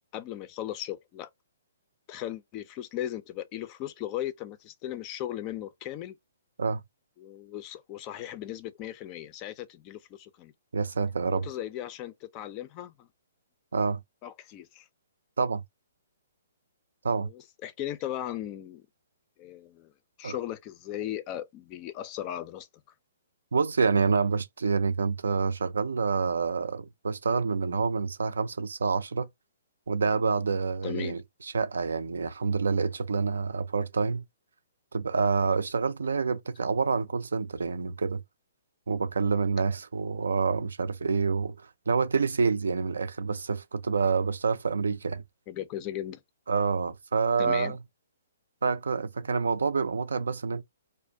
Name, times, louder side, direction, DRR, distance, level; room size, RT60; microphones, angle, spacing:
voice 1, 0.1-1.3 2.1-6.2 7.2-10.5 11.3-13.1 14.2-14.9 17.1-18.8 19.4-19.9 20.2-22.7 30.8-31.2 45.5-46.2 47.4-47.8, left 12 dB, 30° left, 0.4 m, -37 dB
voice 2, 10.7-11.5 13.7-14.0 15.4-15.6 17.0-17.3 20.2-20.4 23.5-29.3 29.9-34.2 34.9-38.2 38.9-45.2 46.5-47.8 48.6-50.6, right 5 dB, 75° right, 0.3 m, -27 dB
2.4 x 2.0 x 2.6 m
figure-of-eight pair, 125°, 0 cm